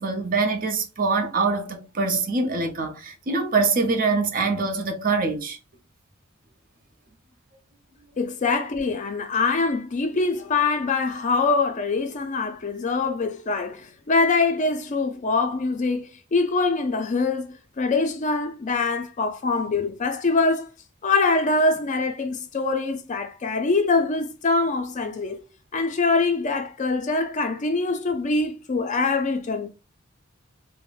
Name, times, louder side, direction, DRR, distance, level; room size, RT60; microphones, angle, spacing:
voice 1, 0.0-5.6, right 4 dB, 45° right, 0.6 m, -24 dB
voice 2, 8.2-20.7 21.0-25.5 25.7-29.7, left 3 dB, 35° left, 0.4 m, -24 dB
3.8 x 2.1 x 2.4 m
head